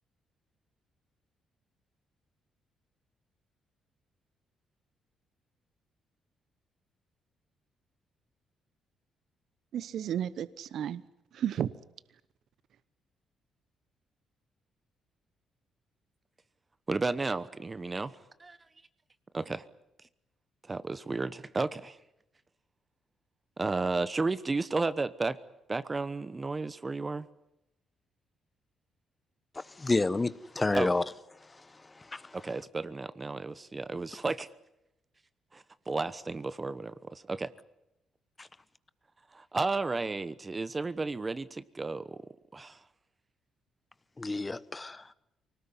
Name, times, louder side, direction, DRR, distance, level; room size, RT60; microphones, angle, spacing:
voice 1, 9.7-11.0 11.3-11.7, right 10 dB, 70° right, 0.9 m, -32 dB
voice 2, 16.9-18.6 19.3-19.7 20.7-22.0 23.6-25.4 25.7-27.3 30.7-30.9 32.3-34.5 35.5-37.5 39.3-42.2 42.5-42.8, right 3 dB, 25° right, 1.0 m, -33 dB
voice 3, 29.5-31.0 31.5-31.6 31.9-32.4 44.2-45.1, left 3 dB, 20° left, 1.1 m, -30 dB
24.5 x 19.0 x 9.8 m
cardioid pair, 90°, 0 cm